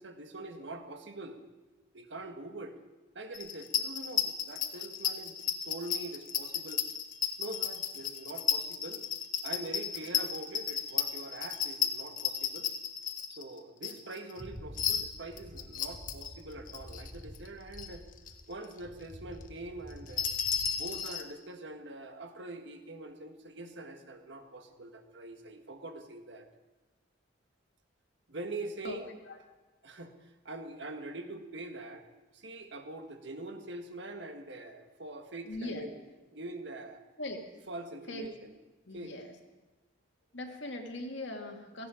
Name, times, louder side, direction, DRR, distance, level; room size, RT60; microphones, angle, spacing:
voice 1, 0.0-1.4 1.9-2.8 3.1-5.4 5.6-6.8 7.4-9.1 9.4-12.7 13.3-18.0 18.5-20.3 20.8-26.5 28.3-29.1 29.8-32.1 32.3-36.0 36.3-37.0 37.7-38.6 38.9-39.1, right 2 dB, 60° right, 6 dB, 1.6 m, -44 dB
sound 1, 3.3-14.4 14.8-16.3 16.7-17.5 17.7-17.9 18.2-18.5 18.8-18.9 19.9-21.2, left 8 dB, 45° left, 1.2 m, -33 dB
sound 2, 14.4-18.6 18.8-21.0, equal, 35° right, 5.2 m, -49 dB
voice 2, 35.4-35.9 37.2-37.4 38.1-38.3 38.9-39.3 40.3-41.9, left 1 dB, 65° left, 3 dB, 2.1 m, -40 dB
17.0 x 16.0 x 5.1 m, 1.2 s
head